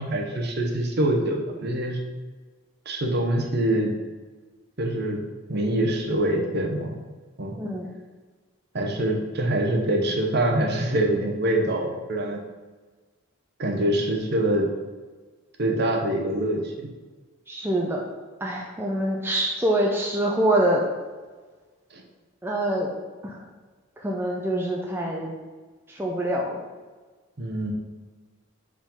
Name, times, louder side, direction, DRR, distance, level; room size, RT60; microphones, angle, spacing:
voice 1, 0.0-2.0 2.9-3.9 4.8-5.2 5.5-6.9 7.4-7.5 8.7-12.4 13.6-14.7 15.6-16.6 21.9-22.0 27.4-27.7, right 1 dB, 50° right, 2 dB, 0.9 m, -24 dB
voice 2, 7.6-7.9 17.5-18.0 18.4-20.8 22.4-22.9 23.2-23.5 24.0-25.3 25.9-26.6, right 1 dB, 10° right, -1 dB, 0.4 m, -25 dB
5.0 x 3.7 x 5.5 m, 1.4 s
head